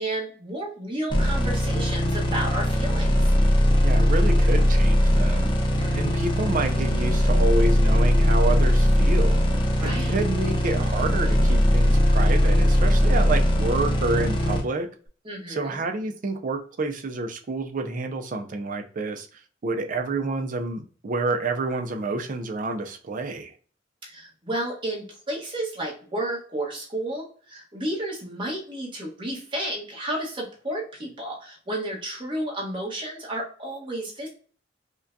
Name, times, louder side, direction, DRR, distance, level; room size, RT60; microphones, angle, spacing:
voice 1, 0.0-3.3 5.6-6.2 9.8-10.1 15.2-15.8 24.0-34.3, right 1 dB, 25° right, 1.2 m, -32 dB
sound 1, 1.1-14.6, equal, 25° left, 0.7 m, -20 dB
voice 2, 3.8-5.5 5.9-9.4 9.8-14.9 15.5-23.5, right 3 dB, 45° right, 0.4 m, -29 dB
4.9 x 2.2 x 2.6 m
head